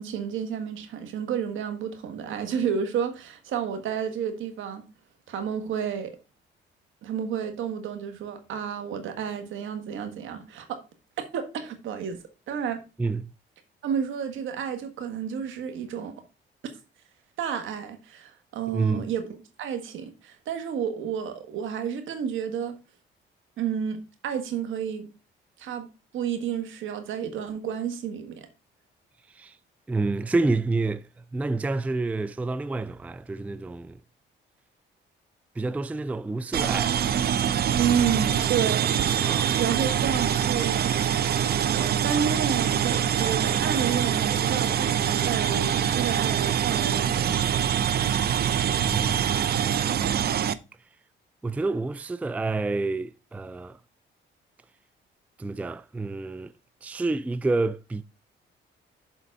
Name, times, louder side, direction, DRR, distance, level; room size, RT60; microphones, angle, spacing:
voice 1, 0.0-4.8 5.3-6.1 7.0-10.8 11.3-12.8 13.8-16.1 17.4-22.7 23.6-25.0 25.6-25.9 26.1-28.5 37.7-39.3 39.6-47.5, right 7 dB, 80° right, 1.6 m, -31 dB
voice 2, 13.0-13.3 18.7-19.1 29.3-29.6 29.9-34.0 35.6-37.0 39.2-39.5 48.8-49.6 51.4-53.8 55.4-56.5 56.8-58.0, right 3 dB, 5° right, 0.3 m, -28 dB
sound 1, 36.5-50.5, right 9 dB, 55° right, 0.6 m, -24 dB
7.2 x 3.9 x 5.2 m
cardioid pair, 90°, 20 cm